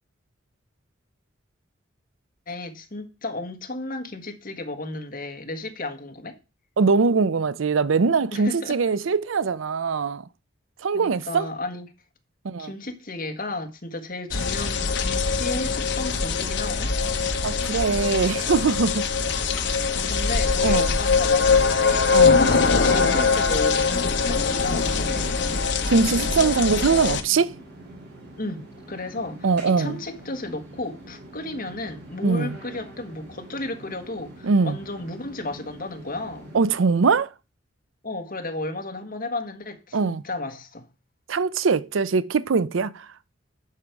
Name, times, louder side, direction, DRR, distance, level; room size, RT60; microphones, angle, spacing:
voice 1, 2.5-6.4 8.3-8.8 10.9-11.9 12.6-16.9 19.2-19.3 19.7-25.5 28.4-36.5 38.0-40.9, left 2 dB, 45° left, 1.5 m, -34 dB
voice 2, 6.8-10.2 10.8-11.5 12.4-12.7 17.4-19.1 20.6-20.9 22.1-22.5 25.9-27.5 29.4-30.0 32.2-32.6 34.4-34.8 36.5-37.3 39.9-40.2 41.3-43.1, right 4 dB, 85° right, 0.5 m, -22 dB
sound 1, 14.3-27.2, left 5 dB, 65° left, 0.9 m, -22 dB
sound 2, 21.0-36.7, right 1 dB, 55° right, 3.0 m, -45 dB
11.0 x 5.1 x 4.6 m
head